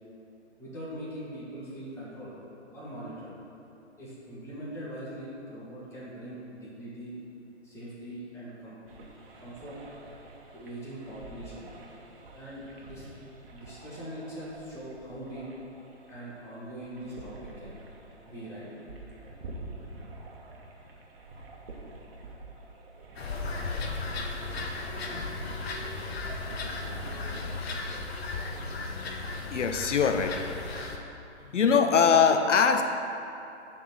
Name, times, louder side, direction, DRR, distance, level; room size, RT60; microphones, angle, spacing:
voice 1, 0.6-2.4 2.7-3.3 4.0-7.2 7.6-8.8 9.3-9.8 10.5-11.7 12.3-13.1 13.5-15.5 16.1-17.8 18.3-18.7, equal, 5° left, -9 dB, 2.0 m, -41 dB
sound 1, 8.9-27.6, right 2 dB, 50° right, 1.4 m, -47 dB
sound 2, 23.2-31.0, left 3 dB, 60° left, 1.1 m, -35 dB
voice 2, 29.5-30.5 31.5-32.8, left 6 dB, 85° left, 7 dB, 0.7 m, -22 dB
9.9 x 4.3 x 6.2 m, 2.8 s
hypercardioid pair, 145°, 36 cm